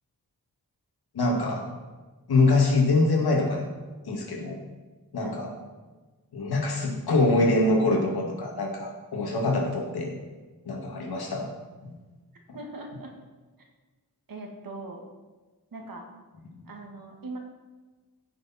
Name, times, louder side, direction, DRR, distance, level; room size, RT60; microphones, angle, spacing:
voice 1, 1.1-1.7 2.3-3.7 4.1-4.6 5.1-5.5 6.3-10.1 10.7-11.5 11.8-11.9 16.5-16.7, left 2 dB, 90° left, 0 dB, 2.3 m, -24 dB
voice 2, 12.5-13.1 14.3-15.0 15.7-16.1 16.7-17.4, right 2 dB, 65° right, 2 dB, 2.1 m, -40 dB
15.5 x 6.5 x 4.4 m, 1.3 s
wide cardioid pair, 95°, 37 cm